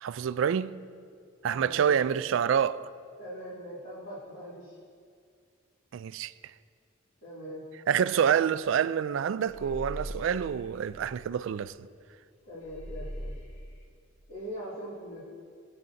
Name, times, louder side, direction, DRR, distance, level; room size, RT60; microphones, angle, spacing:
voice 1, 0.0-0.8 1.4-2.9 5.9-6.3 7.9-11.8, right 8 dB, 70° right, 0.3 m, -27 dB
voice 2, 1.5-2.0 3.2-4.8 7.2-7.6 12.5-13.3 14.3-15.2, equal, 45° left, 2.5 m, -41 dB
sound 1, 9.5-11.9 12.2-12.3 12.6-13.9, equal, 85° left, 1.9 m, -41 dB
21.0 x 8.6 x 2.7 m
head